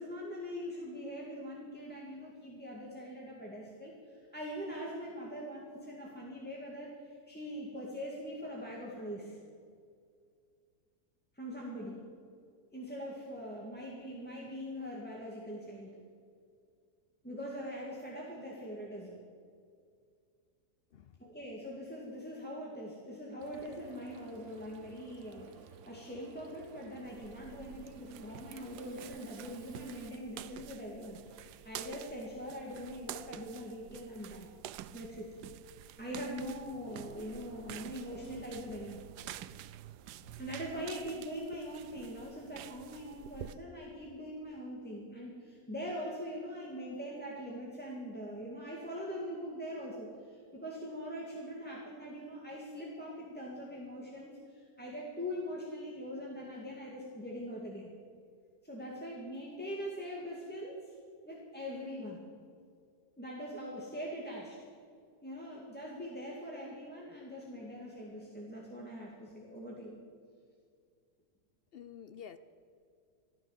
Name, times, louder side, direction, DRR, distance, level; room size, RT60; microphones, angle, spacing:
voice 1, 0.0-9.4 11.4-12.1 12.7-15.9 17.2-19.2 21.2-34.5 34.9-35.3 36.0-39.0 40.4-57.9 58.6-61.0 61.2-62.2 63.2-64.7 65.2-69.9, equal, 5° left, -4 dB, 2.0 m, -42 dB
Frying (food), 23.4-30.1, right 8 dB, 55° right, 0.9 m, -55 dB
sound 1, 27.1-43.5, right 12 dB, 90° right, 1.2 m, -49 dB
voice 2, 71.7-72.4, left 8 dB, 70° left, 12 dB, 0.5 m, -49 dB
15.0 x 13.5 x 7.2 m, 2.2 s
omnidirectional pair, 1.7 m